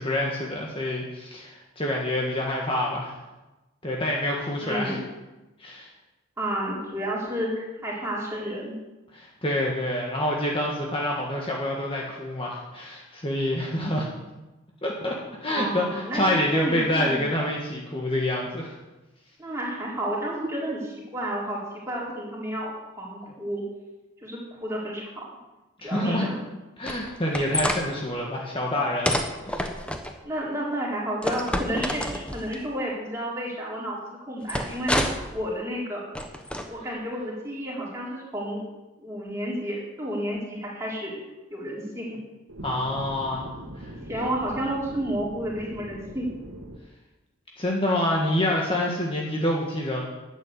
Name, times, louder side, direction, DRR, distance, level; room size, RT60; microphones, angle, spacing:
voice 1, 0.0-3.1 3.8-5.0 5.6-5.9 9.1-14.1 14.8-18.8 25.8-26.3 26.8-29.7 42.6-43.9 47.6-50.0, left 1 dB, 25° left, -2 dB, 1.7 m, -27 dB
voice 2, 4.6-5.0 6.4-8.7 15.5-16.2 16.5-17.3 19.4-21.6 21.9-23.6 24.2-25.2 25.8-26.4 30.2-34.0 34.3-36.0 36.7-38.6 39.0-41.2 41.5-42.2 44.0-46.3, right 1 dB, 15° right, -5 dB, 4.2 m, -31 dB
sound 1, 26.9-27.8 29.1-30.1 31.2-32.6 34.5-35.3 36.2-36.7, equal, 5° left, 1.1 m, -28 dB
sound 2, 42.5-46.8, right 1 dB, 90° right, 1.8 m, -41 dB
12.0 x 8.8 x 8.4 m, 1.1 s
head